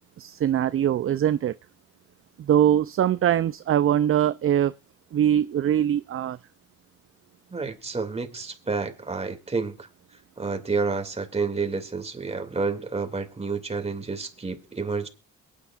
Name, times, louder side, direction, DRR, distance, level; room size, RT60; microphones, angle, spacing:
voice 1, 0.2-1.6 2.4-4.7 5.1-6.4, right 10 dB, 45° right, 0.5 m, -22 dB
voice 2, 7.5-9.9 10.4-15.1, right 4 dB, 20° right, 2.5 m, -29 dB
22.5 x 9.9 x 2.5 m
cardioid pair, 90°, 30 cm